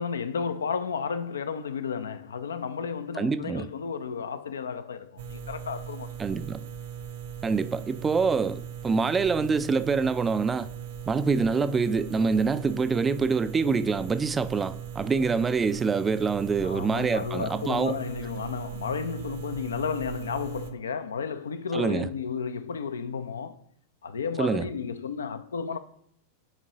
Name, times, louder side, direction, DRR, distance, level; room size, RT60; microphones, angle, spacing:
voice 1, 0.0-6.1 16.6-23.6 24.0-25.8, left 6 dB, 70° left, 0.4 m, -32 dB
voice 2, 3.2-3.7 6.2-6.6 7.4-10.7 11.1-18.0 21.7-22.1 24.4-24.7, right 5 dB, 15° right, 0.3 m, -26 dB
sound 1, 5.2-20.7, right 8 dB, 55° right, 0.6 m, -39 dB
9.7 x 4.5 x 2.8 m
figure-of-eight pair, 90°, 0 cm